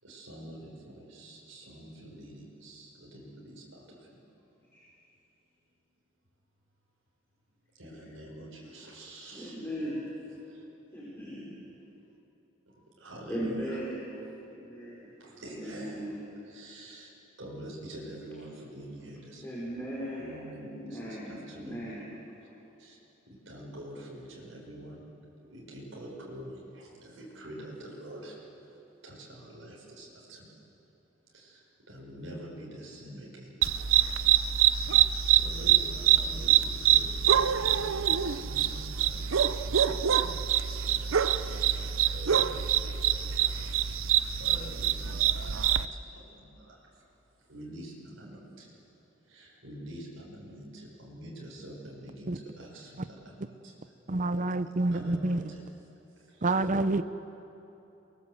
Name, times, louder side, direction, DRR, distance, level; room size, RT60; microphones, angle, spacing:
voice 1, 0.0-4.2 7.7-9.6 10.4-10.6 12.7-13.8 15.2-16.1 16.4-17.1 17.4-19.4 20.2-21.9 22.8-23.0 23.3-28.8 29.0-30.6 31.3-33.6 34.1-34.2 34.5-47.0 47.4-48.8 49.3-53.7 54.9-55.7 56.2-56.7, right 1 dB, 75° right, 5.5 m, -46 dB
voice 2, 9.4-10.0 10.9-11.5 13.3-14.1 14.5-15.1 15.6-16.2 19.4-22.0, equal, 10° left, 5.2 m, -37 dB
sound 1, 33.6-45.9, right 10 dB, 90° right, 0.7 m, -25 dB
voice 3, 54.1-55.4 56.4-57.0, right 2 dB, 40° right, 0.7 m, -27 dB
28.0 x 22.5 x 7.9 m
head